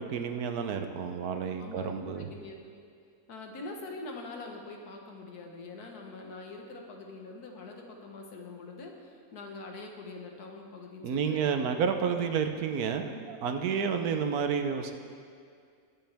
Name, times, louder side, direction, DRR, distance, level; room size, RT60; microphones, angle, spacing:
voice 1, 0.0-2.3 11.0-14.9, right 6 dB, 75° right, 6 dB, 1.3 m, -30 dB
voice 2, 1.3-1.9 2.2-2.6 3.3-11.8, left 3 dB, 80° left, 2 dB, 1.8 m, -44 dB
21.0 x 7.9 x 3.5 m, 2.3 s
omnidirectional pair, 1.6 m